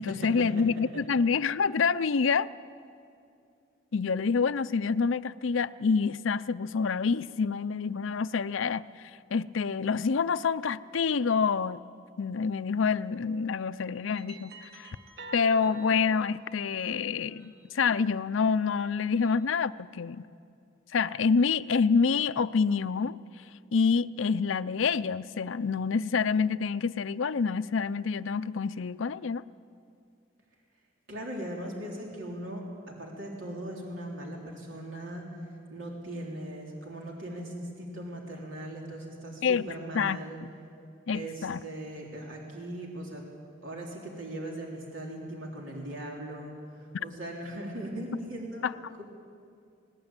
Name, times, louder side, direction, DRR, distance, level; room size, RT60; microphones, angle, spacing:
voice 1, 0.0-2.5 3.9-11.8 12.2-14.9 15.3-20.3 20.9-23.2 23.7-29.4 39.4-39.6 39.9-40.5 41.1-41.6 48.6-48.7, left 5 dB, 85° left, 15 dB, 0.5 m, -27 dB
sound 1, 12.8-13.1 13.8-17.9 18.5-19.6, right 2 dB, 50° right, 1.9 m, -49 dB
voice 2, 31.1-35.4 35.7-40.4 41.1-43.2 43.6-48.7, right 1 dB, 85° right, -1 dB, 3.4 m, -39 dB
20.5 x 19.5 x 8.9 m, 2.4 s
head